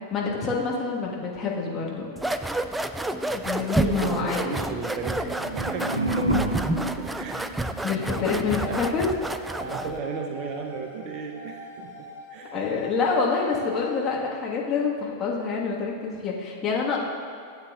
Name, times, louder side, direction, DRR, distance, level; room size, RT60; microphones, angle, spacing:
voice 1, 0.1-2.1 3.3-4.5 7.8-9.1 12.5-17.0, left 5 dB, 25° left, -3 dB, 1.4 m, -27 dB
sound 1, 2.2-10.0, right 1 dB, 5° right, 0.3 m, -29 dB
voice 2, 3.7-7.5 7.8-8.0 8.7-8.8 9.6-12.6, right 5 dB, 40° right, 4 dB, 0.7 m, -35 dB
sound 2, 5.0-8.1, right 1 dB, 85° right, 0.5 m, -30 dB
sound 3, 8.0-14.1, left 1 dB, 80° left, 1.3 m, -42 dB
12.5 x 8.2 x 2.4 m, 2.3 s
figure-of-eight pair, 90°, 0 cm